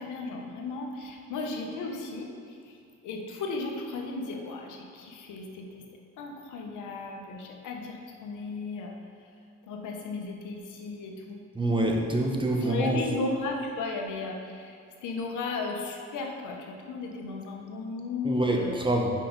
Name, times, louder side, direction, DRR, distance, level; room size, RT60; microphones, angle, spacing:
voice 1, 0.0-2.8 3.0-5.9 6.2-8.9 9.7-11.4 12.6-18.7, left 3 dB, 80° left, 2 dB, 1.0 m, -35 dB
voice 2, 11.5-13.0 18.2-19.1, right 1 dB, 15° right, 0 dB, 1.0 m, -26 dB
5.6 x 5.1 x 5.2 m, 2.3 s
cardioid pair, 90°, 30 cm